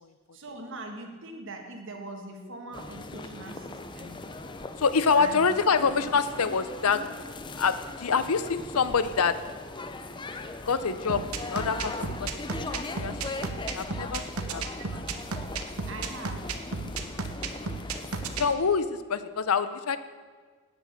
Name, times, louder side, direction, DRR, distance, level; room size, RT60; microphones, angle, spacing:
voice 1, 0.3-4.2 5.2-5.4 6.0-6.3 14.8-15.0 15.9-16.5, right 2 dB, 60° right, 3 dB, 1.7 m, -41 dB
sound 1, 2.7-18.5, left 2 dB, 20° left, 0.6 m, -40 dB
voice 2, 4.8-7.2 7.5-9.4 10.6-12.3 12.7-13.1 13.7-14.6 18.4-20.0, left 5 dB, 85° left, 13 dB, 0.7 m, -26 dB
sound 2, 11.1-18.4, right 4 dB, 80° right, 1.0 m, -33 dB
10.5 x 9.2 x 6.7 m, 1.5 s
head